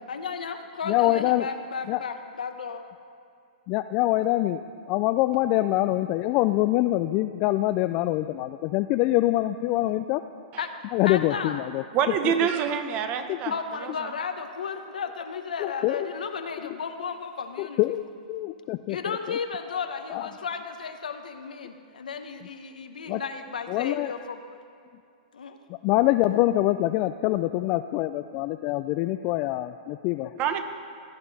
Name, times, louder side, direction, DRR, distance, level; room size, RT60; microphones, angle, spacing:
voice 1, 0.1-2.8 10.6-10.7 11.0-11.6 13.4-17.8 18.9-24.4 25.3-25.6, left 5 dB, 85° left, 7 dB, 1.0 m, -34 dB
voice 2, 0.9-1.5 1.9-2.0 3.7-4.6 4.9-10.2 10.9-11.8 13.3-13.4 15.6-16.1 17.6-18.0 18.3-19.0 19.3-19.4 20.1-20.3 23.1-23.2 23.7-24.1 25.8-29.7 30.0-30.3, left 16 dB, 40° left, 10 dB, 0.3 m, -24 dB
voice 3, 11.9-13.5 13.8-14.1 30.4-30.6, right 8 dB, 35° right, 8 dB, 0.9 m, -26 dB
16.5 x 9.7 x 4.1 m, 2.4 s
hypercardioid pair, 125°, 4 cm